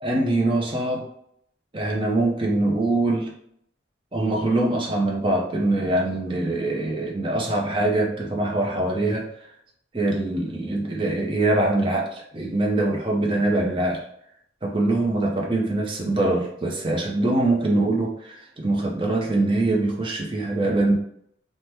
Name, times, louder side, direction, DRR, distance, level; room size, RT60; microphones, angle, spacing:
voice 1, 0.0-1.1 1.7-3.3 4.1-9.3 9.9-14.0 14.6-20.9, right 2 dB, 25° right, -1 dB, 0.6 m, -23 dB
2.9 x 2.1 x 3.3 m, 0.69 s
head